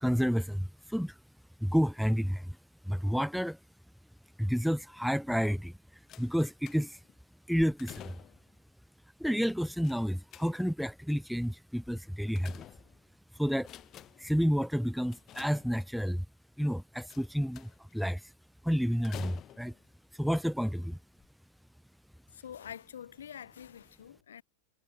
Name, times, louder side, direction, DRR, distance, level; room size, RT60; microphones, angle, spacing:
voice 1, 0.0-1.2 1.6-2.6 2.9-3.6 4.4-5.7 6.2-7.0 7.5-8.2 9.2-12.6 13.3-13.7 14.2-16.3 16.6-18.3 18.6-19.7 20.1-21.0, equal, ahead, 0.4 m, -30 dB
sound 1, 6.1-7.1 7.6-8.5 9.8-10.9 11.9-13.2 13.6-14.4 15.1-16.1 17.1-17.9 19.0-19.9 20.7-20.8 21.2-21.3, left 13 dB, 30° left, 0.9 m, -50 dB
voice 2, 22.3-24.4, left 9 dB, 65° left, 1.7 m, -46 dB
figure-of-eight pair, 90°, 0 cm